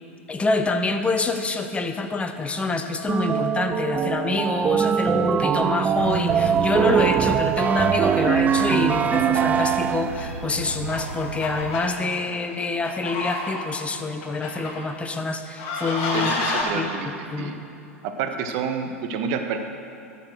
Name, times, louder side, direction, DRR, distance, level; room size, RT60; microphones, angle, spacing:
voice 1, 0.3-16.3 16.7-16.9 17.3-17.6, left 3 dB, 15° left, 7 dB, 0.9 m, -26 dB
sound 1, 3.1-10.4, right 8 dB, 20° right, 0.3 m, -22 dB
sound 2, 6.0-11.8, right 4 dB, 85° right, 0.6 m, -34 dB
sound 3, 9.1-9.8 10.1-10.3 10.7-13.7 14.2-14.8 15.6-16.6, left 3 dB, 50° left, 2.9 m, -30 dB
voice 2, 16.1-17.1 17.4-17.5 18.0-19.6, right 6 dB, 50° right, 6 dB, 1.1 m, -28 dB
11.5 x 6.9 x 6.4 m, 2.8 s
figure-of-eight pair, 90°, 8 cm